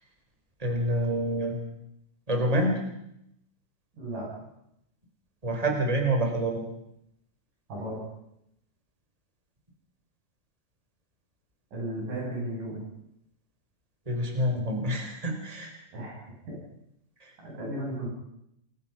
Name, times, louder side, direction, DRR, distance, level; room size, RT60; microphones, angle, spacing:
voice 1, 0.6-1.6 2.3-2.8 5.4-6.6 14.1-15.7 17.2-17.3, right 1 dB, 10° right, 3 dB, 4.1 m, -27 dB
voice 2, 4.0-4.3 7.7-8.0 11.7-12.9 15.9-16.2 16.5-16.6 17.4-18.1, right 1 dB, 70° right, -3 dB, 9.1 m, -34 dB
29.0 x 21.5 x 5.9 m, 0.79 s
omnidirectional pair, 3.9 m